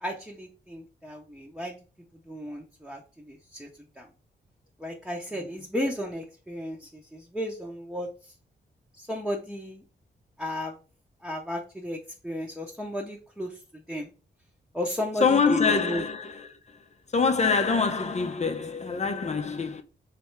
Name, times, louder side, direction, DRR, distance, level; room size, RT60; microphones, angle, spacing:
voice 1, 0.0-1.8 2.3-3.0 3.3-3.7 4.0-4.1 4.8-8.1 9.0-9.8 10.4-10.7 11.2-12.0 12.2-13.5 13.9-14.1 14.7-16.0, equal, 5° right, 1.0 m, -34 dB
voice 2, 15.2-16.5 17.1-19.8, left 5 dB, 40° left, 0.7 m, -24 dB
3.4 x 3.3 x 4.6 m
cardioid pair, 80°, 19 cm